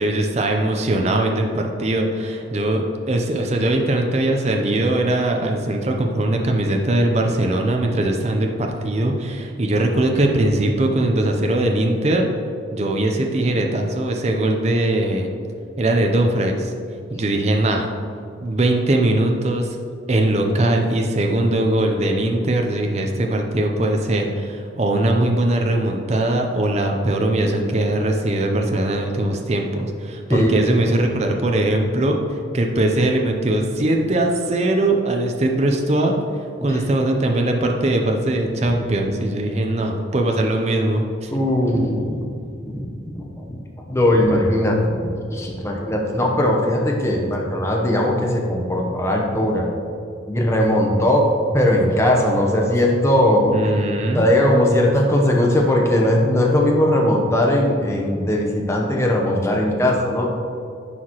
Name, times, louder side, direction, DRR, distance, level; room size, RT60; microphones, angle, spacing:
voice 1, 0.0-12.3 12.7-15.3 15.8-16.7 17.1-17.9 18.3-19.8 20.1-36.2 36.6-41.3 53.5-54.2, right 1 dB, 35° right, 2 dB, 0.5 m, -20 dB
voice 2, 30.3-30.9 36.6-36.8 38.6-38.7 41.3-42.2 42.7-43.6 43.9-49.7 50.3-53.7 54.1-60.3, left 1 dB, 15° left, -1 dB, 0.7 m, -19 dB
9.7 x 4.7 x 2.9 m, 2.4 s
head